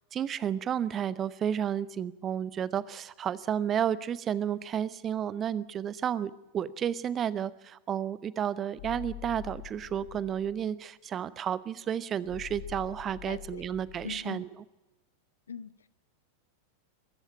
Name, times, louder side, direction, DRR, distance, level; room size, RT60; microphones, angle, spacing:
voice 1, 0.1-14.5, right 9 dB, 25° right, 19 dB, 0.9 m, -32 dB
sound 1, 8.8-10.6 12.2-14.2, left 16 dB, 50° left, 1.7 m, -45 dB
voice 2, 13.2-13.7 14.0-14.4 15.5-15.9, left 6 dB, 70° left, 17 dB, 0.8 m, -41 dB
23.0 x 14.0 x 8.7 m, 0.99 s
figure-of-eight pair, 90°, 0 cm